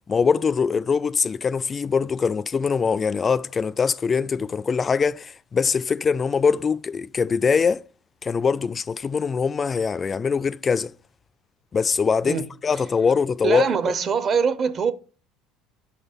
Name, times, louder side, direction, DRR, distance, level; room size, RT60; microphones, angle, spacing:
voice 1, 0.1-7.9 8.2-10.9 11.7-13.9, left 5 dB, 25° left, 0.3 m, -23 dB
voice 2, 13.4-14.9, right 6 dB, 40° right, 0.7 m, -23 dB
6.1 x 4.0 x 5.2 m
supercardioid pair, 115°, 0 cm